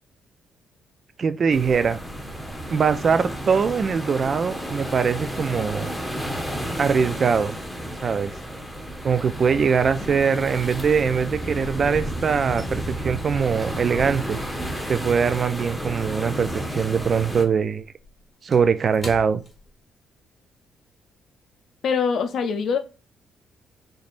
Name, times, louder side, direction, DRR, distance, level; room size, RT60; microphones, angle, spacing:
voice 1, 1.2-2.0 2.7-5.9 6.8-7.6 8.0-8.3 9.0-14.4 14.9-17.9 18.4-19.4, right 6 dB, 45° right, 0.3 m, -22 dB
sound 1, 1.5-17.4, right 1 dB, 5° left, 0.9 m, -32 dB
sound 2, 12.4-16.8 17.0-20.4 20.7-20.9 21.3-21.6, left 1 dB, 20° left, 1.6 m, -46 dB
voice 2, 21.8-22.8, left 6 dB, 65° left, 0.5 m, -23 dB
3.9 x 3.3 x 2.5 m
cardioid pair, 90°, 0 cm